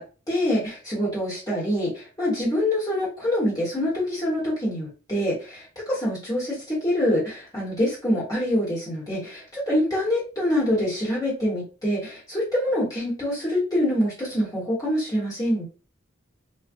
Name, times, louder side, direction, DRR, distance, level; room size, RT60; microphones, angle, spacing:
voice 1, 0.3-15.6, left 1 dB, 15° left, -7 dB, 1.3 m, -25 dB
2.4 x 2.4 x 2.6 m, 0.34 s
head